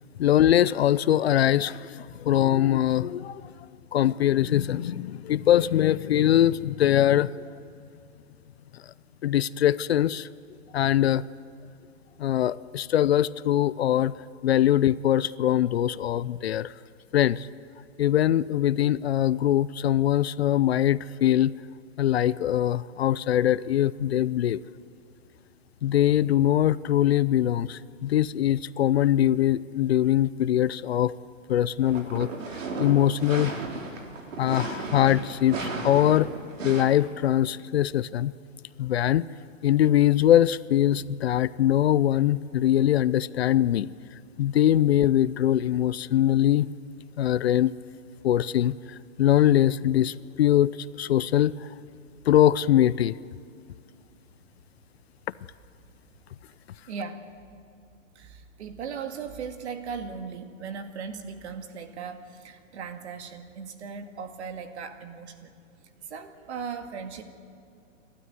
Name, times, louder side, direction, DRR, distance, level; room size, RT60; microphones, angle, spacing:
voice 1, 0.2-3.5 3.9-7.5 9.2-10.3 10.7-11.2 12.2-14.1 14.4-16.7 17.1-17.5 18.0-21.5 22.0-24.6 25.8-31.1 31.5-32.3 32.8-33.6 34.4-36.3 36.6-38.3 38.8-39.3 39.6-43.9 44.4-46.7 47.2-47.7 48.2-50.7 51.0-51.7 52.3-53.2, left 12 dB, 55° left, 18 dB, 0.5 m, -22 dB
sound 1, 31.8-36.8, right 3 dB, 75° right, 3.8 m, -34 dB
voice 2, 56.9-57.2 58.2-65.5 65.8-67.2, right 6 dB, 55° right, 7 dB, 2.1 m, -38 dB
29.0 x 13.0 x 9.5 m, 2.4 s
hypercardioid pair, 165°, 39 cm